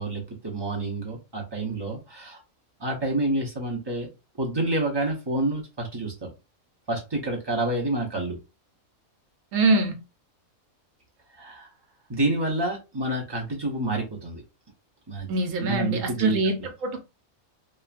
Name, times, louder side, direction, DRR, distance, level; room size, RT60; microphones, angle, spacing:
voice 1, 0.0-2.4 2.8-4.1 4.4-6.3 6.9-8.4 11.3-11.7 12.1-14.4 15.1-15.3 15.6-16.7, right 2 dB, 30° right, 0.5 m, -28 dB
voice 2, 9.5-9.9 15.3-16.6 16.8-17.0, right 2 dB, 70° right, 1.0 m, -23 dB
3.0 x 2.2 x 2.4 m
omnidirectional pair, 1.4 m